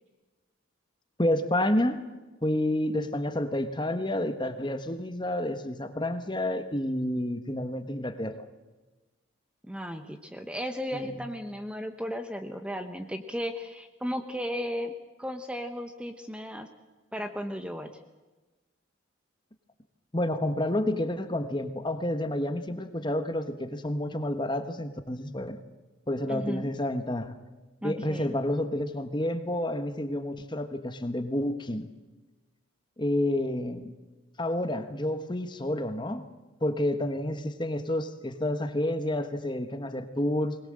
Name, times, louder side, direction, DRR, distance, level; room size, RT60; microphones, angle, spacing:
voice 1, 1.2-2.0 2.4-8.4 10.9-11.2 20.1-25.6 26.1-27.3 27.8-31.9 33.0-33.9 34.4-36.3 36.6-40.6, left 1 dB, 20° left, 9 dB, 1.3 m, -29 dB
voice 2, 9.7-14.9 15.2-16.7 17.1-17.9 26.3-26.7 27.8-28.3, equal, 5° right, 7 dB, 1.0 m, -35 dB
21.5 x 20.5 x 7.7 m, 1.2 s
head